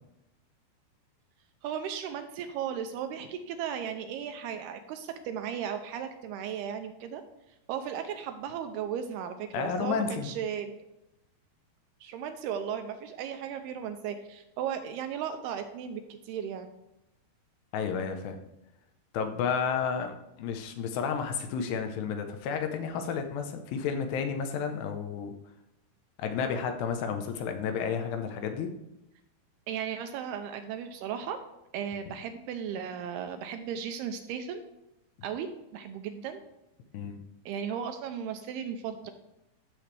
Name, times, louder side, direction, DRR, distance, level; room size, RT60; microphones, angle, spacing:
voice 1, 1.6-7.2 7.7-10.7 12.0-16.7 29.7-31.4 31.7-34.6 35.2-36.4 37.5-39.1, right 8 dB, 80° right, 7 dB, 2.4 m, -36 dB
voice 2, 9.5-10.3 17.7-18.4 19.1-20.1 20.4-25.3 26.2-28.7 36.9-37.2, left 6 dB, 75° left, 6 dB, 2.9 m, -31 dB
15.0 x 7.1 x 3.3 m, 0.91 s
omnidirectional pair, 5.1 m